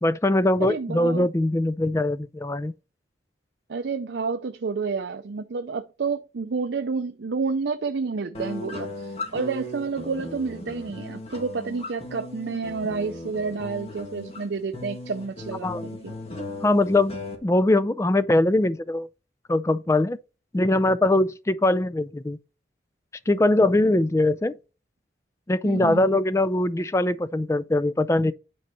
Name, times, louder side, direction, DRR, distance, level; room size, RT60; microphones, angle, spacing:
voice 1, 0.0-2.7 15.6-15.8 16.6-19.1 19.5-20.2 20.5-22.4 23.3-24.5 25.5-28.3, left 2 dB, 15° left, 0.4 m, -22 dB
voice 2, 0.7-1.3 3.7-15.7 16.0-16.1 25.6-26.0, right 4 dB, 75° right, 0.5 m, -29 dB
sound 1, 8.3-17.3, left 1 dB, 35° left, 1.8 m, -37 dB
9.3 x 4.6 x 4.2 m
head